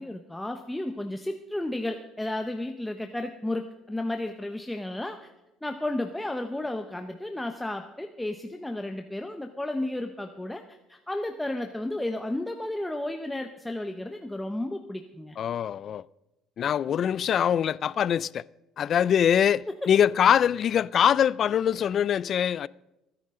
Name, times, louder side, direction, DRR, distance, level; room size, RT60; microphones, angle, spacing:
voice 1, 0.0-5.3 5.6-10.6 10.9-15.4 19.7-19.9, left 1 dB, 5° left, 0.9 m, -33 dB
voice 2, 15.4-16.0 16.6-18.4 18.8-22.7, left 9 dB, 50° left, 0.3 m, -23 dB
23.0 x 9.9 x 3.8 m
cardioid pair, 105°, 0 cm